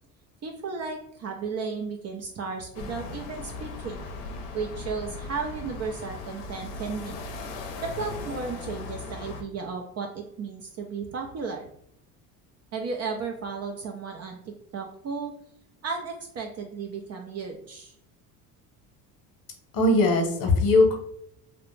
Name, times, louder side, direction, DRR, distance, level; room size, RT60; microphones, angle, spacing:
voice 1, 0.4-4.0 4.5-7.2 7.8-11.7 12.7-15.3 15.8-17.9, right 5 dB, 35° right, 3 dB, 0.4 m, -34 dB
sound 1, 2.7-9.4, left 3 dB, 85° left, 0.6 m, -38 dB
voice 2, 19.7-21.0, left 2 dB, 50° left, 3 dB, 0.8 m, -20 dB
2.3 x 2.1 x 3.1 m, 0.70 s
hypercardioid pair, 75°, 46 cm